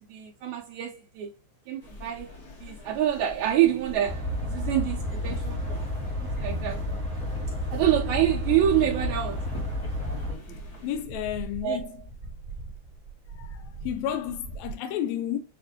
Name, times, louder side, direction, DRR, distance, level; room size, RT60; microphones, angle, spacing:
voice 1, 0.0-1.3 1.7-5.8 6.4-6.9 7.7-9.6 11.6-12.1, right 11 dB, 75° right, 1.9 m, -27 dB
sound 1, 1.8-11.0, left 3 dB, 45° left, 1.3 m, -45 dB
sound 2, 4.0-10.3, left 1 dB, 5° right, 1.0 m, -31 dB
sound 3, 6.3-14.7, right 4 dB, 45° right, 1.0 m, -42 dB
voice 2, 10.8-11.9 13.3-15.4, left 10 dB, 80° left, 1.7 m, -32 dB
6.4 x 2.5 x 2.8 m
omnidirectional pair, 3.5 m